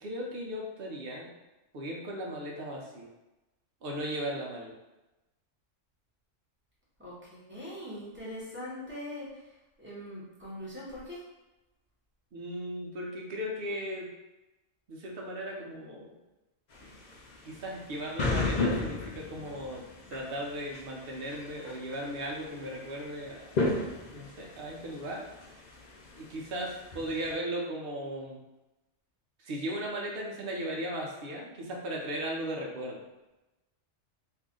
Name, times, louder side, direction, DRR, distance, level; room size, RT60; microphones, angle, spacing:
voice 1, 0.0-1.3 1.7-3.1 3.8-4.7 12.3-14.1 14.9-16.1 17.4-19.8 20.1-23.4 24.1-25.3 26.2-28.4 29.4-33.0, right 1 dB, 55° right, -1 dB, 0.8 m, -37 dB
voice 2, 7.0-9.5 9.8-11.2, left 1 dB, 10° right, -8 dB, 1.0 m, -42 dB
sound 1, 16.7-27.3, left 2 dB, 60° left, 0.5 m, -35 dB
2.7 x 2.5 x 3.6 m, 1.0 s
omnidirectional pair, 1.3 m